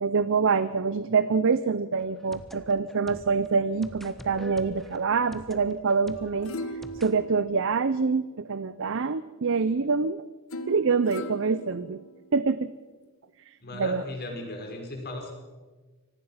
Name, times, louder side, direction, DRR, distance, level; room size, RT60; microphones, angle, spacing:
voice 1, 0.0-6.5 7.0-10.2 10.7-12.0 12.3-12.7 13.7-14.0, right 5 dB, 60° right, 14 dB, 0.6 m, -25 dB
sound 1, 2.0-7.2, equal, ahead, 1.2 m, -46 dB
simple ukulele sounds, 6.2-8.5 10.5-12.5 13.1-13.2, equal, 65° left, 1.5 m, -40 dB
voice 2, 13.6-15.3, left 1 dB, 45° left, 2 dB, 5.1 m, -36 dB
25.0 x 18.5 x 5.8 m, 1.3 s
head